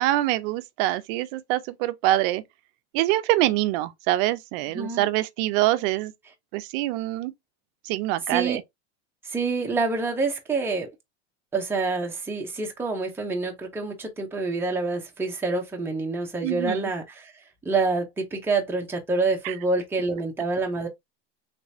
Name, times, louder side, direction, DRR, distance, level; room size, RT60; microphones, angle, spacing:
voice 1, 0.0-2.4 2.9-6.1 6.5-7.3 7.9-8.6 16.4-16.9 19.4-19.5, right 16 dB, 55° right, 0.6 m, -25 dB
voice 2, 4.7-5.1 8.3-8.6 9.2-10.9 11.5-17.3 17.6-20.9, right 3 dB, 5° right, 0.8 m, -27 dB
3.3 x 2.9 x 2.7 m
supercardioid pair, 120°, 33 cm